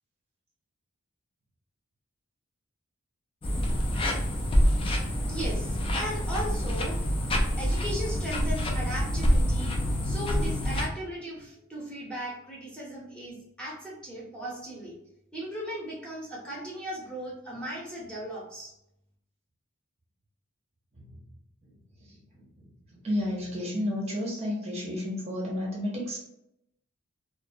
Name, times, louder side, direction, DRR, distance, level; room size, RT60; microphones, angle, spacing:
sound 1, 3.4-10.9, equal, 25° left, 0.3 m, -26 dB
voice 1, 5.3-7.0 7.6-9.8 10.0-15.0 15.3-18.7, right 1 dB, 5° left, -6 dB, 0.7 m, -37 dB
voice 2, 22.1-22.4 22.9-26.2, left 1 dB, 30° right, -3 dB, 0.7 m, -32 dB
2.4 x 2.2 x 2.7 m, 0.80 s
head